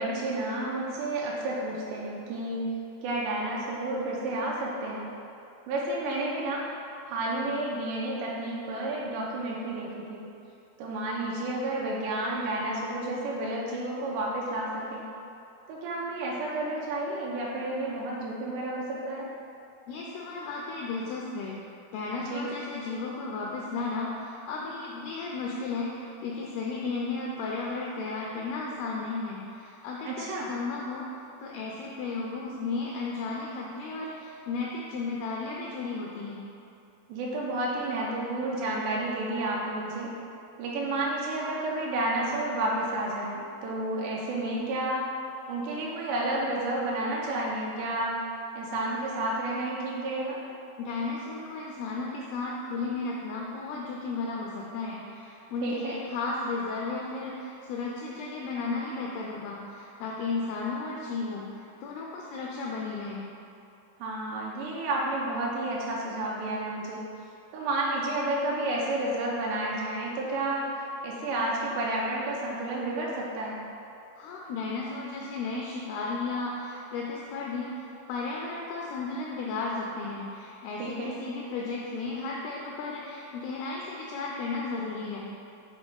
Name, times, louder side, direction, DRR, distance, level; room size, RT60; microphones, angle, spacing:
voice 1, 0.0-5.1 5.7-6.6 7.1-10.3 10.8-15.0 15.7-19.3 22.2-22.4 30.1-30.5 37.1-40.1 40.6-45.1 45.5-48.2 48.6-50.4 55.6-56.0 64.0-67.1 67.5-70.7 71.0-73.6 80.8-81.2, right 2 dB, 85° right, -4 dB, 2.8 m, -31 dB
voice 2, 19.9-21.6 21.9-36.4 50.8-63.2 74.2-85.3, left 3 dB, 85° left, -2 dB, 2.2 m, -34 dB
7.6 x 4.0 x 3.5 m, 2.7 s
omnidirectional pair, 5.0 m